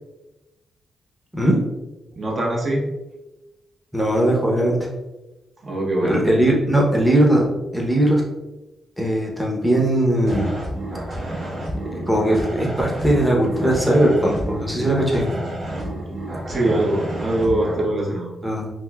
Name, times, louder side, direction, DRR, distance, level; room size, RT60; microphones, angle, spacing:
voice 1, 2.2-2.8 5.6-6.2 16.3-18.3, right 1 dB, 45° right, -2 dB, 0.7 m, -22 dB
voice 2, 3.9-4.8 6.0-7.5 7.7-8.2 9.0-10.5 11.9-15.3 18.4-18.7, right 1 dB, 5° right, -2 dB, 0.7 m, -19 dB
sound 1, 10.2-17.8, right 1 dB, 65° right, 1.1 m, -30 dB
3.4 x 2.5 x 2.2 m, 1.0 s
cardioid pair, 90°, 0 cm